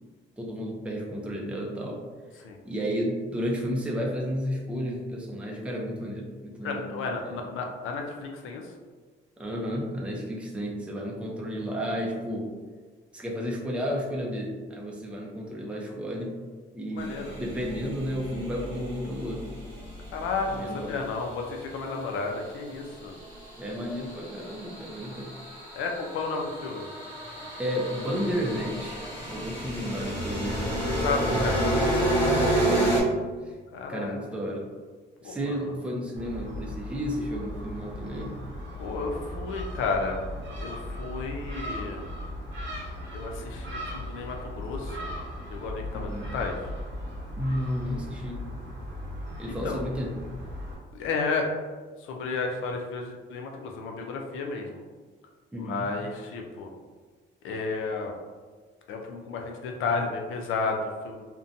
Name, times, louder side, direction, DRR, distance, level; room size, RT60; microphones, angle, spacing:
voice 1, 0.4-2.0 2.6-6.9 7.2-7.4 9.4-12.5 13.1-16.3 16.7-19.4 20.5-21.0 23.6-25.3 27.6-29.0 29.3-30.6 32.6-33.0 33.4-33.5 33.9-34.6 35.2-38.3 45.9-46.3 47.4-48.6 49.4-50.1 55.5-55.9, equal, 5° right, -2 dB, 0.5 m, -32 dB
voice 2, 6.6-8.7 16.9-17.4 20.1-23.1 25.7-26.9 31.0-32.6 33.7-34.1 35.2-35.7 38.8-40.2 40.6-42.1 43.1-45.1 45.5-46.6 49.4-49.8 50.9-51.5 52.0-54.8 55.6-56.7 57.4-58.1 58.9-61.2, left 4 dB, 85° left, 2 dB, 0.5 m, -32 dB
sound 1, 17.0-21.3 22.8-33.0, right 1 dB, 10° left, 1.2 m, -30 dB
Gull seagull, 36.2-50.8, left 1 dB, 70° right, 0.8 m, -37 dB
2.6 x 2.2 x 2.5 m, 1.4 s
cardioid pair, 90°, 20 cm